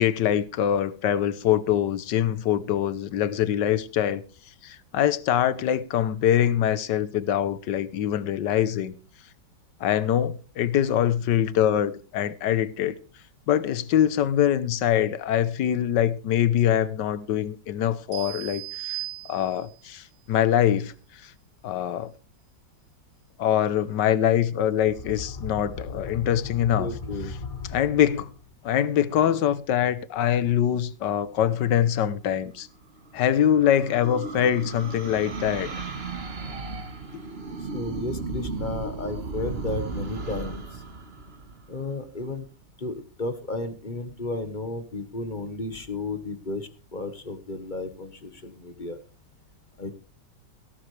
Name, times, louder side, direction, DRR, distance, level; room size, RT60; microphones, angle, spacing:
voice 1, 0.0-4.2 4.6-8.9 9.8-13.0 13.5-19.0 19.3-20.9 21.2-21.3 21.6-22.1 23.4-26.9 27.7-28.3 28.6-32.7 33.1-35.7, left 10 dB, 75° left, 1.5 m, -24 dB
sound 1, 18.1-19.9, right 17 dB, 70° right, 4.6 m, -36 dB
sound 2, 24.9-28.5, left 4 dB, 50° left, 2.7 m, -37 dB
voice 2, 26.8-27.3 37.7-40.8 41.7-42.4 42.8-49.0 49.8-49.9, left 2 dB, 30° left, 1.3 m, -33 dB
sound 3, 32.6-42.2, right 3 dB, 35° right, 1.6 m, -35 dB
17.0 x 12.5 x 3.3 m
omnidirectional pair, 1.9 m